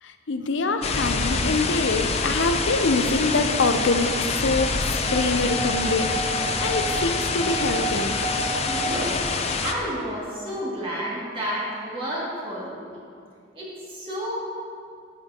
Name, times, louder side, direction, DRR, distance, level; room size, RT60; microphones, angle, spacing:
voice 1, 0.0-6.3 6.6-8.3, left 3 dB, 85° left, 8 dB, 0.6 m, -25 dB
sound 1, 0.8-9.7, left 4 dB, 35° left, 0.6 m, -26 dB
sound 2, 5.1-9.0, right 4 dB, 5° left, 2.2 m, -32 dB
voice 2, 8.6-9.2 9.6-12.9 13.5-14.5, equal, 30° right, -7 dB, 2.4 m, -31 dB
11.0 x 9.2 x 2.9 m, 2.4 s
head